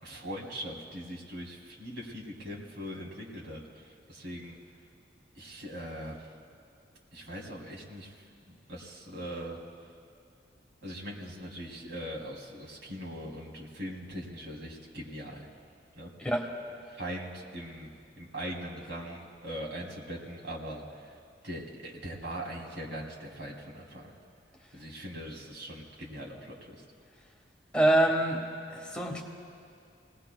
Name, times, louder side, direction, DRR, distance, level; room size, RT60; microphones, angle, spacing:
voice 1, 0.0-4.6 5.3-6.2 7.1-8.1 8.5-9.6 10.8-15.5 16.0-16.1 16.9-17.9 18.2-21.1 21.4-24.1 24.7-26.8, equal, 80° right, -3 dB, 2.8 m, -41 dB
voice 2, 27.7-28.4 28.7-29.2, right 1 dB, 5° left, 0 dB, 1.3 m, -25 dB
29.5 x 19.0 x 2.2 m, 2.3 s
head